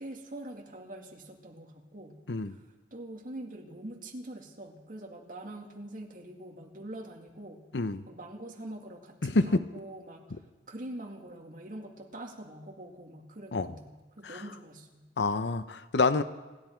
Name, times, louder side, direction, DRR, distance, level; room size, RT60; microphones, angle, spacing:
voice 1, 0.0-2.2 2.5-2.6 2.9-7.6 8.1-10.4 10.7-15.1, right 1 dB, 50° right, 1 dB, 2.1 m, -44 dB
voice 2, 7.7-8.0 9.2-9.6 13.5-13.7 15.2-16.2, left 3 dB, 80° left, 12 dB, 0.8 m, -27 dB
27.5 x 11.0 x 4.6 m, 1.2 s
head